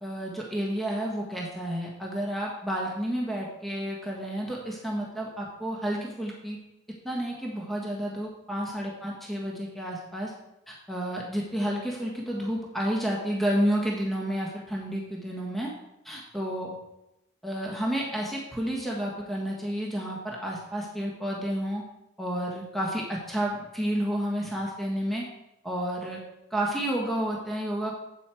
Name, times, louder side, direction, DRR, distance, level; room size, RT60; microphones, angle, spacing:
voice 1, 0.0-6.6 7.0-10.3 10.7-15.7 16.0-16.7 17.4-21.8 22.2-25.3 25.6-26.2 26.5-27.9, equal, ahead, -3 dB, 1.5 m, -30 dB
8.5 x 8.4 x 4.5 m, 0.89 s
head